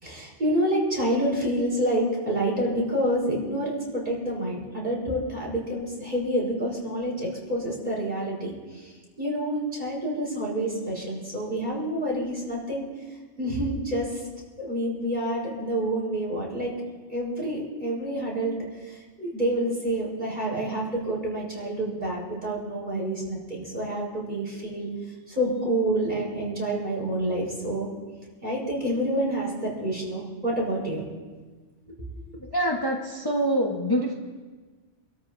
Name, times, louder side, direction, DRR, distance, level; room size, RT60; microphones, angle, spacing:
voice 1, 0.0-8.5 9.2-12.8 13.4-14.1 14.6-16.7 17.1-18.6 19.2-24.9 25.4-27.9 28.4-31.0, right 1 dB, 40° right, -4 dB, 4.2 m, -28 dB
voice 2, 32.5-34.1, equal, 20° left, -1 dB, 1.0 m, -25 dB
27.5 x 13.0 x 2.6 m, 1.4 s
omnidirectional pair, 1.2 m